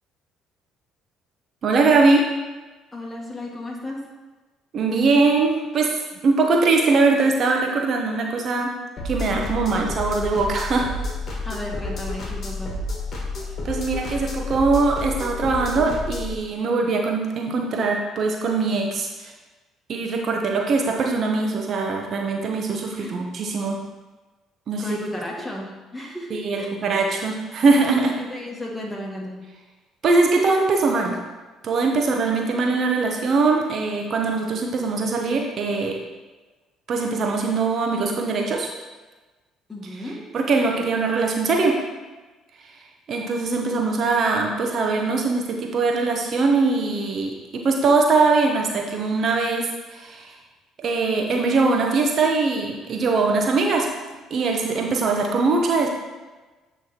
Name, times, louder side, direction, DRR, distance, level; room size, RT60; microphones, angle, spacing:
voice 1, 1.6-2.3 4.7-5.9 6.2-8.7 9.0-10.9 13.6-19.3 19.9-23.8 24.7-25.0 26.3-28.1 30.0-31.2 31.6-36.0 36.9-38.7 40.3-41.8 43.1-50.4 50.8-53.9 54.3-55.9, right 3 dB, 55° right, 1 dB, 0.9 m, -21 dB
voice 2, 2.9-4.1 11.4-12.8 23.0-23.2 24.8-26.7 28.2-29.4 39.7-40.2, left 1 dB, 20° left, -1 dB, 1.8 m, -34 dB
sound 1, 9.0-16.3, left 2 dB, 45° left, 1.7 m, -30 dB
8.6 x 3.4 x 4.3 m, 1.2 s
hypercardioid pair, 60°, 0 cm